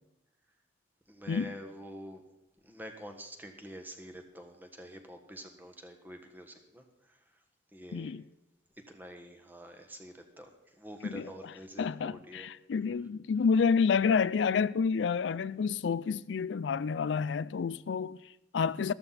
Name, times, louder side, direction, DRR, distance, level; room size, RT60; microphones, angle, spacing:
voice 1, 1.1-2.2 2.6-7.4 7.7-8.1 8.9-12.5, equal, 10° right, 1.5 m, -47 dB
voice 2, 7.9-8.2 11.0-11.3 11.8-18.9, left 5 dB, 85° left, 0.4 m, -29 dB
13.5 x 13.5 x 4.2 m
head